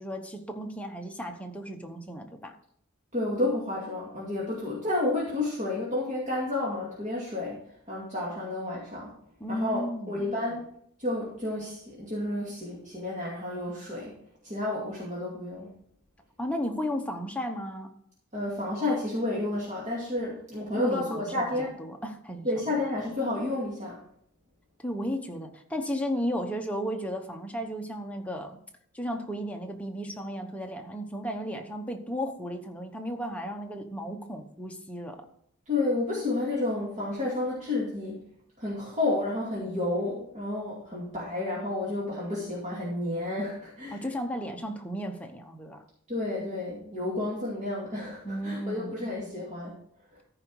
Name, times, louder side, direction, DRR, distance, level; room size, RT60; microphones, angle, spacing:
voice 1, 0.0-2.5 9.4-10.2 16.4-17.9 20.7-22.5 24.8-28.6 28.9-35.3 43.9-45.8 48.2-49.0, equal, 5° left, 3 dB, 1.0 m, -34 dB
voice 2, 3.1-7.6 7.9-9.1 9.5-10.6 11.0-14.2 14.4-15.8 18.3-21.8 22.4-24.0 35.7-38.2 38.6-44.0 46.1-49.7, left 2 dB, 35° right, -5 dB, 2.4 m, -31 dB
14.0 x 5.2 x 4.7 m, 0.69 s
head